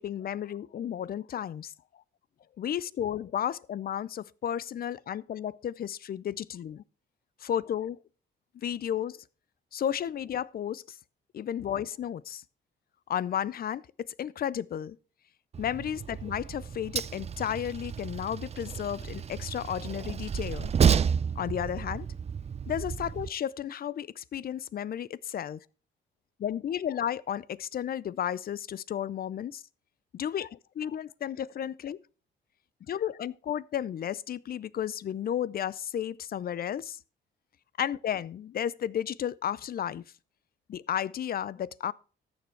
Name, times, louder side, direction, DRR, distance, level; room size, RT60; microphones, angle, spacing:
voice 1, 0.0-1.7 2.6-6.8 7.4-8.0 8.5-9.2 9.7-11.0 11.3-12.4 13.1-15.0 15.6-20.7 21.4-22.1 22.7-25.6 26.4-29.6 30.1-32.0 32.9-37.0 37.8-40.0 40.7-41.9, left 9 dB, 50° left, 0.5 m, -33 dB
Train, 15.5-23.3, right 7 dB, 30° right, 0.5 m, -31 dB
13.5 x 7.0 x 4.5 m
cardioid pair, 90°, 20 cm